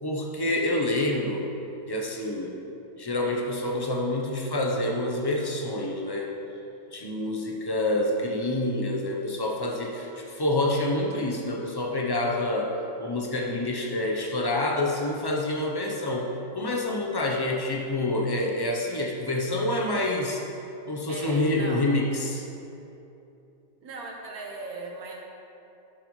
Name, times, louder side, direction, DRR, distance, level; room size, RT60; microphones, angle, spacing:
voice 1, 0.0-1.5 1.9-2.5 3.0-6.3 6.9-20.4 20.9-22.5, left 1 dB, 40° left, 0 dB, 0.3 m, -27 dB
voice 2, 21.1-21.9 23.8-25.3, right 3 dB, 60° right, -1 dB, 1.7 m, -38 dB
12.5 x 7.9 x 3.2 m, 2.9 s
omnidirectional pair, 1.8 m